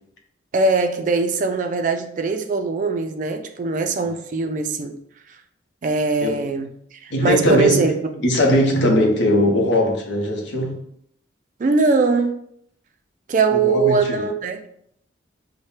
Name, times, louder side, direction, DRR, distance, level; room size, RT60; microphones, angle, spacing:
voice 1, 0.5-5.0 5.8-8.2 11.6-12.4 13.3-14.6, right 4 dB, 40° right, 0.3 m, -21 dB
voice 2, 7.1-7.9 8.2-10.8 13.5-14.3, left 1 dB, 70° left, 0.7 m, -19 dB
4.2 x 2.1 x 3.2 m
head